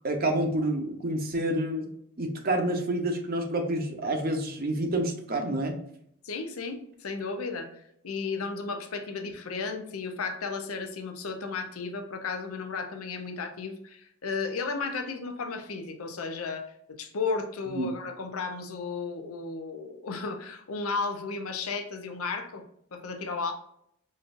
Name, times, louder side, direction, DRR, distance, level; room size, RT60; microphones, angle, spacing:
voice 1, 0.0-5.8 17.7-17.9, right 1 dB, 45° right, 3 dB, 0.7 m, -28 dB
voice 2, 6.2-22.6 22.9-23.5, left 4 dB, 80° left, 6 dB, 0.6 m, -34 dB
5.2 x 2.5 x 2.5 m, 0.71 s
head